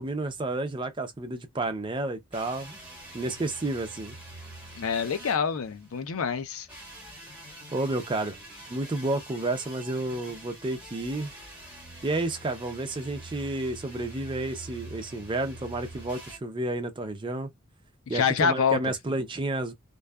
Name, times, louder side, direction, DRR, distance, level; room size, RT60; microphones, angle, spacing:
voice 1, 0.0-2.8 3.1-4.1 7.7-8.4 8.7-11.3 12.0-17.5 18.1-19.7, right 2 dB, 20° right, 0.4 m, -31 dB
sound 1, 2.3-6.1 6.7-16.4, right 1 dB, 5° right, 1.0 m, -45 dB
voice 2, 4.7-6.7 18.1-18.8, left 6 dB, 75° left, 0.5 m, -26 dB
2.6 x 2.2 x 2.2 m
head